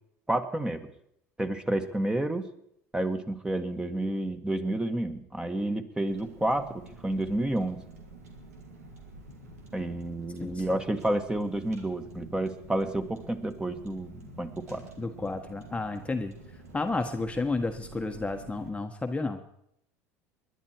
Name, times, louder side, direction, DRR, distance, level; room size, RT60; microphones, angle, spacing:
voice 1, 0.3-0.8 1.4-2.4 2.9-7.8 9.7-14.8, right 1 dB, 10° right, 7 dB, 1.8 m, -30 dB
Car, 6.1-18.7, right 2 dB, 90° right, 3.0 m, -49 dB
voice 2, 15.0-16.3 16.7-19.4, left 3 dB, 15° left, 5 dB, 1.3 m, -31 dB
20.5 x 11.5 x 4.6 m, 0.74 s
hypercardioid pair, 80°, 8 cm